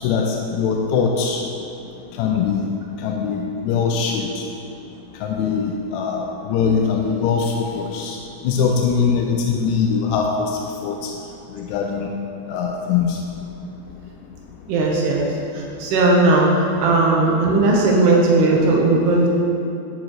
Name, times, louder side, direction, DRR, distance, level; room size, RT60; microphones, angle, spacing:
voice 1, 0.0-1.4 2.2-2.7 3.0-4.5 5.2-8.2 8.4-11.1 11.6-12.1 12.5-13.2, left 6 dB, 85° left, 1 dB, 2.8 m, -22 dB
voice 2, 14.7-15.3 15.5-16.5 16.8-19.3, right 2 dB, 85° right, -2 dB, 3.0 m, -17 dB
10.0 x 9.9 x 3.1 m, 2.8 s
omnidirectional pair, 4.8 m